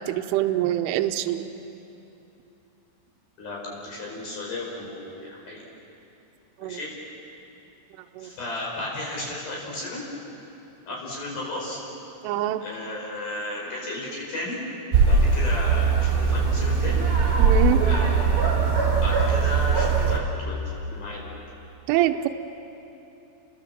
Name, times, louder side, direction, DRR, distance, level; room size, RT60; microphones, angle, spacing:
voice 1, 0.0-1.4 6.6-6.8 8.2-8.3 12.2-12.6 17.4-17.8 21.9-22.3, right 13 dB, 80° right, 5 dB, 3.2 m, -24 dB
voice 2, 3.4-5.7 6.6-6.9 8.2-10.0 10.9-11.8 12.6-14.6 15.1-17.0 17.8-18.7 19.0-20.6 20.9-21.3, left 2 dB, 50° left, -4 dB, 6.6 m, -34 dB
sound 1, 14.9-20.2, right 5 dB, 30° right, 2.3 m, -20 dB
30.0 x 22.5 x 7.6 m, 2.9 s
omnidirectional pair, 5.9 m